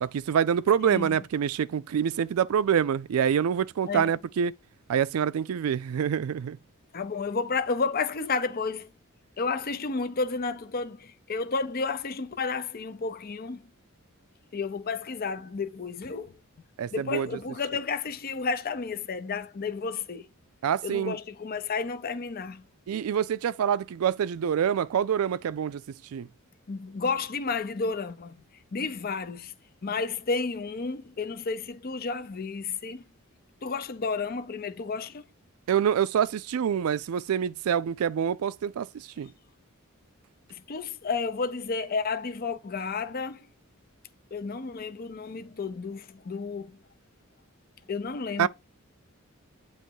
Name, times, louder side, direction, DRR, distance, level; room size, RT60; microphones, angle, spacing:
voice 1, 0.0-4.5 4.9-6.6 16.8-17.3 20.6-21.1 22.9-25.8 26.1-26.3 35.7-38.9 39.2-39.3 48.4-48.5, right 8 dB, 85° right, 0.4 m, -26 dB
voice 2, 0.8-1.2 3.9-4.1 6.9-8.9 9.4-13.7 14.5-16.4 16.9-20.3 20.8-22.6 26.7-28.4 28.7-29.5 29.8-33.0 33.6-35.2 40.5-43.5 44.3-46.8 47.9-48.5, left 4 dB, 45° left, 0.6 m, -31 dB
8.7 x 3.1 x 4.5 m
head